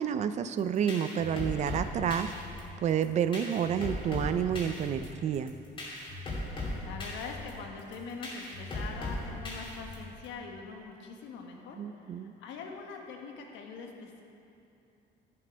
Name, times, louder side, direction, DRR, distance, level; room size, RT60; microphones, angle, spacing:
voice 1, 0.0-2.3 2.8-5.5 11.8-12.3, right 8 dB, 40° right, 11 dB, 0.4 m, -29 dB
sound 1, 0.6-10.2, left 2 dB, 30° left, 2.5 m, -38 dB
voice 2, 6.6-14.2, left 5 dB, 85° left, 2 dB, 1.4 m, -43 dB
13.5 x 7.7 x 5.1 m, 2.7 s
cardioid pair, 160°, 19 cm